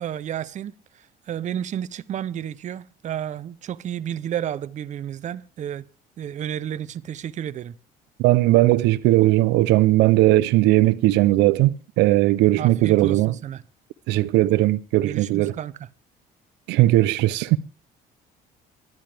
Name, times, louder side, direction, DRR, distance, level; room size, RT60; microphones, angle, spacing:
voice 1, 0.0-5.8 6.2-7.8 12.6-13.6 15.0-15.9, right 10 dB, 45° right, 0.6 m, -32 dB
voice 2, 8.2-13.3 14.1-15.5 16.7-17.6, right 17 dB, 90° right, 0.6 m, -18 dB
23.0 x 10.5 x 3.4 m
cardioid pair, 110°, 17 cm